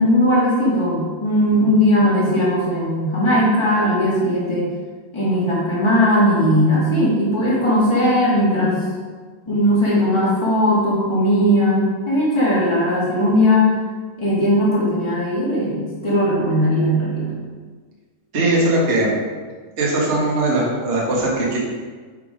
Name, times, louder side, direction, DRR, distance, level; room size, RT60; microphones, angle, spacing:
voice 1, 0.0-4.7 5.1-8.8 9.4-13.7 14.2-17.3, equal, 10° left, -8 dB, 1.4 m, -18 dB
voice 2, 18.3-19.2 19.8-21.6, right 2 dB, 40° right, -4 dB, 0.9 m, -19 dB
5.9 x 5.4 x 5.0 m, 1.5 s
omnidirectional pair, 3.8 m